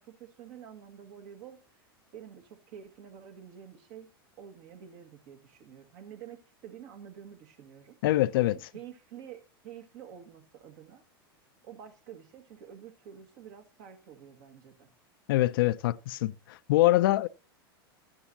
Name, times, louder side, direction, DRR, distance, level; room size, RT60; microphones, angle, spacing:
voice 1, 0.0-1.6 2.1-4.1 4.4-8.0 8.5-11.0 11.6-14.9, right 9 dB, 60° right, 1.8 m, -48 dB
voice 2, 8.0-8.6 15.3-17.3, left 16 dB, 65° left, 0.4 m, -24 dB
12.5 x 10.0 x 2.7 m
hypercardioid pair, 105°, 12 cm